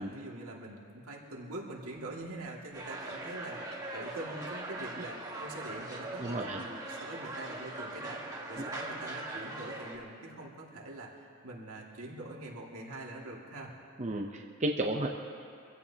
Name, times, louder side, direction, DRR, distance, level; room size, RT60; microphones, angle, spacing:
voice 1, 0.0-3.6 3.9-13.7, right 2 dB, 80° right, -2 dB, 2.3 m, -44 dB
sound 1, 2.7-10.0, right 2 dB, 15° right, 1.5 m, -41 dB
voice 2, 6.2-6.6 14.0-15.1, right 1 dB, 30° right, 1 dB, 0.7 m, -32 dB
25.0 x 16.0 x 2.9 m, 2.4 s
head